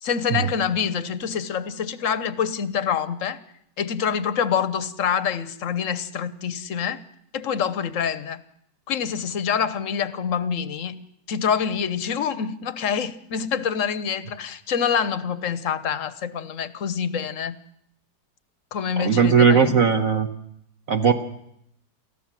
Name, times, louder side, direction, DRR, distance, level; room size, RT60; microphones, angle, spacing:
voice 1, 0.0-3.4 3.8-7.0 7.3-8.4 8.9-17.6 18.7-19.8, left 7 dB, 50° left, 14 dB, 1.2 m, -26 dB
voice 2, 19.0-20.3 20.9-21.1, right 6 dB, 55° right, 4 dB, 1.4 m, -18 dB
29.0 x 14.0 x 7.5 m, 0.74 s
omnidirectional pair, 2.0 m